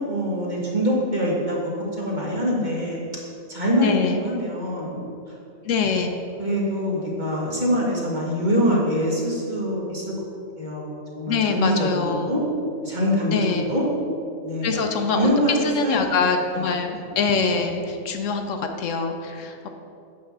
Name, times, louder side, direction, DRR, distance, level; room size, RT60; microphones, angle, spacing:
voice 1, 0.1-3.0 3.5-5.1 6.4-10.1 10.6-12.4 12.8-13.9 14.4-16.1 16.5-17.0, equal, 35° right, -4 dB, 1.8 m, -24 dB
voice 2, 3.8-4.2 5.7-6.2 11.3-12.3 13.3-13.6 14.6-19.7, left 5 dB, 70° left, 5 dB, 1.0 m, -24 dB
8.6 x 4.2 x 7.2 m, 2.5 s
omnidirectional pair, 1.4 m